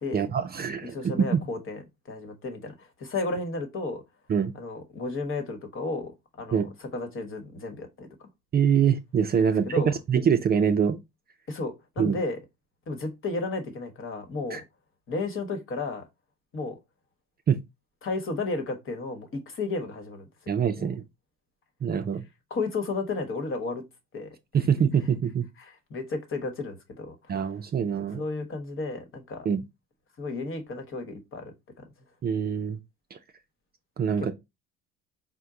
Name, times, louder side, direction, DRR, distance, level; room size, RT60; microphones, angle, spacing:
voice 1, 0.1-1.4 4.3-4.5 6.5-6.7 8.5-11.0 12.0-12.2 14.5-14.6 17.5-17.6 20.5-21.0 21.8-22.2 24.5-25.5 27.3-28.2 29.4-29.6 32.2-32.8 33.1-33.2 34.0-34.3, right 7 dB, 30° right, 0.5 m, -24 dB
voice 2, 0.9-1.8 2.1-4.0 4.5-8.1 9.4-9.9 11.5-12.4 12.9-14.6 15.1-16.0 16.5-16.8 18.0-20.3 20.8-20.9 22.5-23.8 24.1-24.3 25.6-27.1 28.2-29.5 30.2-31.5 34.2-34.3, left 3 dB, 45° left, 1.2 m, -33 dB
4.4 x 2.2 x 3.7 m
supercardioid pair, 90°, 30 cm